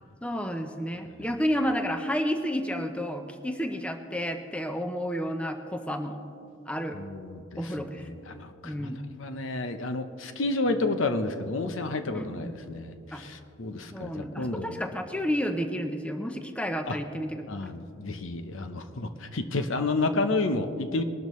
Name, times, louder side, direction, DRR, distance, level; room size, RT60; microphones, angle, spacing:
voice 1, 0.2-6.2 6.7-7.0 7.6-8.0 8.6-9.0 12.1-12.5 13.1-13.2 13.9-17.7, equal, 5° left, 5 dB, 0.6 m, -31 dB
voice 2, 6.9-7.9 8.3-8.9 9.2-14.8 16.9-17.0 17.5-21.0, left 2 dB, 75° left, 8 dB, 0.8 m, -30 dB
21.5 x 12.0 x 3.1 m, 2.6 s
head